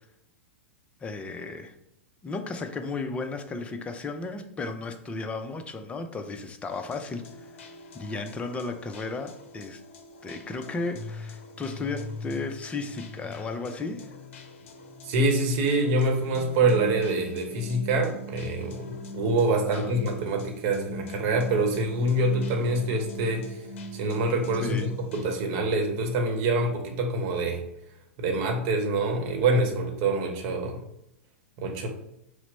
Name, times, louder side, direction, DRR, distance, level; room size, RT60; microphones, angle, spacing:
voice 1, 1.0-1.7 2.2-9.8 10.2-14.1 19.7-19.9 24.6-24.9, left 3 dB, 15° left, 6 dB, 0.5 m, -34 dB
sound 1, 6.7-25.4, left 1 dB, 60° left, 0.7 m, -41 dB
voice 2, 15.0-23.6 23.9-27.6 28.2-30.8 31.6-31.9, right 2 dB, 45° right, 3 dB, 1.0 m, -25 dB
5.8 x 2.1 x 4.1 m, 0.82 s
figure-of-eight pair, 100°, 7 cm